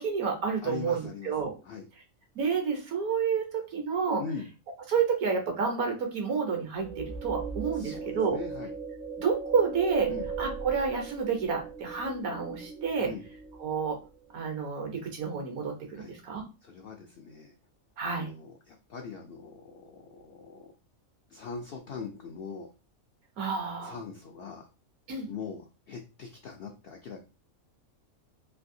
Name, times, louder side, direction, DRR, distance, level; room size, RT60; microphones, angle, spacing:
voice 1, 0.0-1.5 2.4-4.2 4.9-8.4 9.2-10.1 10.4-13.1 13.6-14.0 14.3-16.4 18.0-18.3 23.4-24.0 25.1-25.3, right 5 dB, 75° right, 3 dB, 1.3 m, -29 dB
voice 2, 0.6-1.3 1.6-1.9 4.2-4.5 7.7-8.7 10.1-10.3 13.0-13.2 16.0-16.1 16.6-17.5 18.0-20.7 21.3-22.7 23.8-24.7 25.3-27.2, left 5 dB, 80° left, 3 dB, 0.5 m, -41 dB
sound 1, 6.8-14.1, right 5 dB, 55° right, 0.6 m, -38 dB
3.2 x 2.6 x 2.6 m, 0.32 s
omnidirectional pair, 1.5 m